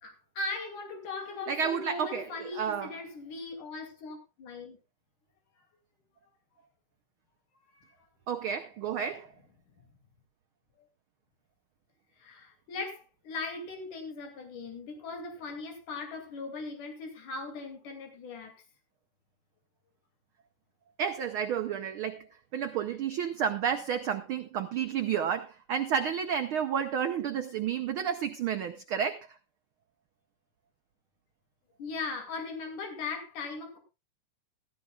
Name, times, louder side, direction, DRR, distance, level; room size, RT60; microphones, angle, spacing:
voice 1, 0.0-4.8 7.7-7.9 12.2-18.6 31.8-33.8, left 3 dB, 80° left, 4.1 m, -39 dB
voice 2, 1.5-2.9 8.3-9.3 21.0-22.3 22.5-29.4, right 8 dB, 85° right, 1.1 m, -31 dB
15.5 x 15.0 x 2.4 m
omnidirectional pair, 3.5 m